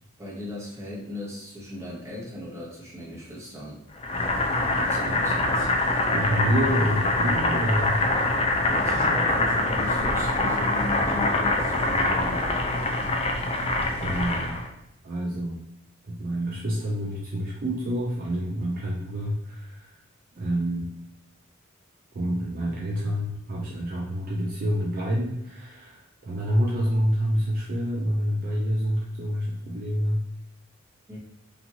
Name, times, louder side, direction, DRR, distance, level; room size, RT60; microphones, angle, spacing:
voice 1, 0.2-3.8 4.8-5.7 8.7-12.7 31.1-31.2, left 1 dB, 15° right, -6 dB, 1.0 m, -36 dB
Boiling, 4.0-14.7, left 2 dB, 30° left, 0.4 m, -24 dB
voice 2, 6.1-8.0 14.0-14.6 15.0-15.6 16.0-20.0 20.3-20.9 22.1-30.2, equal, 45° right, -2 dB, 0.4 m, -27 dB
3.0 x 2.5 x 2.7 m, 0.81 s
head